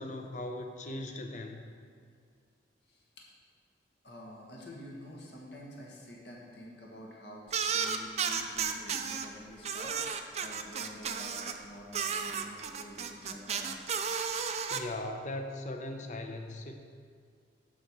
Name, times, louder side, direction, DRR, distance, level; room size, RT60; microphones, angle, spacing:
voice 1, 0.0-1.6 14.7-16.8, left 1 dB, 40° left, 4 dB, 0.7 m, -39 dB
voice 2, 2.9-3.2 4.0-13.8, equal, 60° left, -2 dB, 1.6 m, -48 dB
sound 1, 7.5-9.3 9.6-11.6 11.9-14.8, right 6 dB, 35° right, 0.4 m, -33 dB
12.0 x 4.3 x 4.7 m, 2.2 s
head